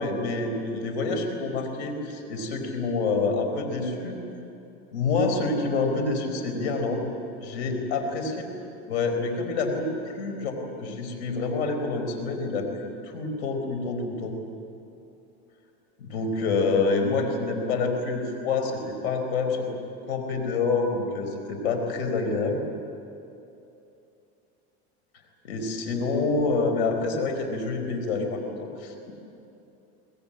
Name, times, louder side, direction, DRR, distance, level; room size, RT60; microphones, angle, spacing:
voice 1, 0.0-4.2 4.9-7.1 7.4-8.3 8.9-14.4 16.0-19.7 20.1-22.6 25.4-29.1, left 3 dB, 90° left, 5 dB, 4.7 m, -27 dB
24.0 x 19.5 x 8.9 m, 2.8 s
supercardioid pair, 125°, 32 cm